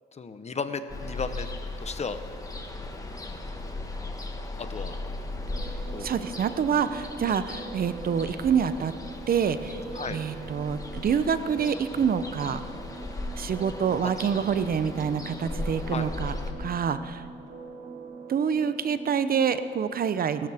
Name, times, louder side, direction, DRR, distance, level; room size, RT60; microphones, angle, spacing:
voice 1, 0.2-1.5 1.8-2.2 4.6-5.0 5.9-6.2 7.3-7.4 9.9-10.2 14.0-14.1 15.9-16.1, left 5 dB, 35° left, 10 dB, 0.9 m, -34 dB
Ocean, 0.9-16.5, left 2 dB, 15° left, 1.5 m, -37 dB
sound 1, 5.3-19.6, right 4 dB, 65° right, 1.5 m, -44 dB
voice 2, 6.0-8.9 9.3-9.8 10.1-12.6 13.4-17.2 18.3-20.5, right 7 dB, 50° right, 12 dB, 0.7 m, -27 dB
24.0 x 13.5 x 3.5 m, 2.4 s
cardioid pair, 90°, 20 cm